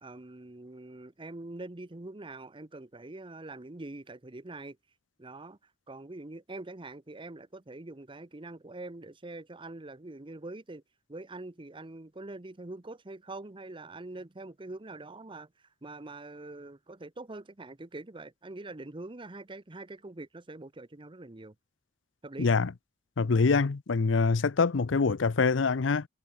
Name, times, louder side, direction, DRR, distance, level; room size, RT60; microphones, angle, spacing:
voice 1, 0.0-4.8 5.2-5.6 5.9-10.8 11.1-21.5 22.2-22.5, right 2 dB, 25° right, 0.9 m, -44 dB
voice 2, 22.4-22.7 23.2-26.1, left 4 dB, 85° left, 0.6 m, -25 dB
head